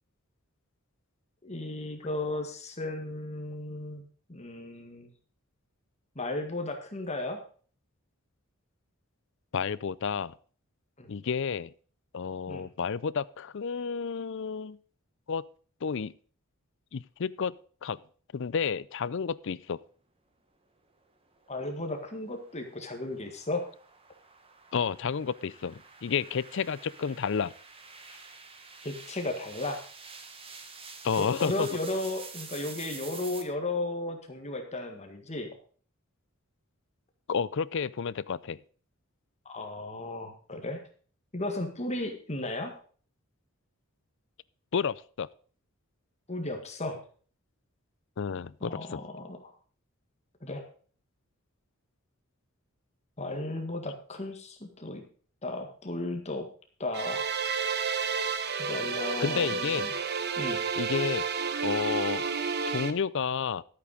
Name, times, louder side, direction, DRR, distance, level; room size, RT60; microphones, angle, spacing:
voice 1, 1.4-4.0 4.3-5.1 6.2-7.4 11.0-11.1 12.5-12.7 21.5-23.6 28.8-29.8 31.1-35.5 39.5-40.8 41.3-42.8 46.3-47.0 48.6-49.4 50.4-50.6 53.2-55.0 55.4-56.5 56.8-57.3 58.6-59.9 60.4-60.6, left 2 dB, 30° left, 5 dB, 1.8 m, -35 dB
voice 2, 9.5-10.3 11.1-11.7 12.1-14.8 15.3-15.4 15.8-16.1 16.9-17.5 17.8-18.0 18.3-19.8 24.7-27.5 31.0-31.7 37.3-38.6 44.7-45.3 48.2-49.0 59.2-59.9 60.8-61.3 61.6-62.3 62.7-63.6, left 6 dB, 55° left, 19 dB, 0.5 m, -31 dB
sound 1, 21.4-33.4, right 5 dB, 25° right, 1.4 m, -48 dB
sound 2, 56.9-62.9, right 5 dB, 50° right, 1.0 m, -31 dB
12.5 x 8.6 x 5.0 m, 0.43 s
head